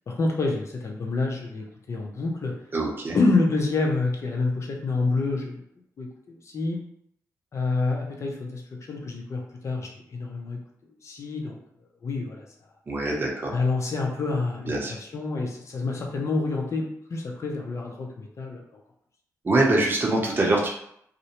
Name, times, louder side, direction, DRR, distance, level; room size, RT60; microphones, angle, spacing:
voice 1, 0.1-2.6 3.1-5.6 6.0-6.8 7.5-10.6 11.0-11.6 12.0-12.4 13.5-18.8, left 3 dB, 55° left, 0 dB, 0.6 m, -28 dB
voice 2, 2.7-3.2 12.9-13.5 14.7-14.9 19.4-20.7, right 2 dB, 35° right, -2 dB, 0.7 m, -23 dB
2.5 x 2.1 x 2.9 m, 0.71 s
cardioid pair, 75°, 6 cm